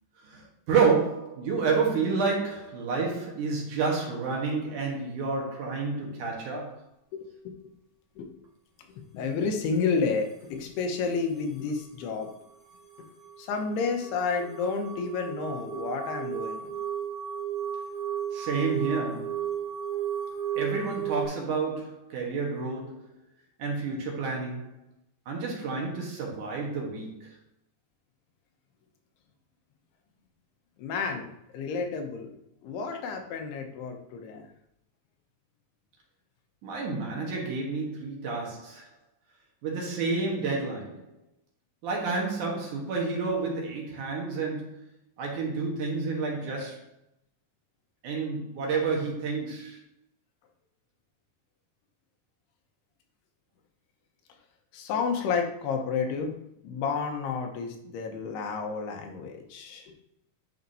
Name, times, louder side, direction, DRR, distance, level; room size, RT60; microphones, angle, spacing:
voice 1, 0.2-6.8 18.3-19.5 20.6-23.1 23.6-24.8 25.3-27.4 36.6-38.9 39.6-41.1 41.8-44.9 45.2-46.8 48.0-49.8, right 4 dB, 60° right, 2.4 m, -30 dB
voice 2, 7.1-7.5 8.2-8.3 8.9-12.3 13.4-16.7 30.8-32.3 32.6-34.5 54.7-56.3 56.6-60.0, left 5 dB, 80° left, 3.0 m, -31 dB
sound 1, 12.9-21.3, right 9 dB, 15° right, 3.1 m, -34 dB
10.5 x 5.9 x 2.7 m
omnidirectional pair, 4.7 m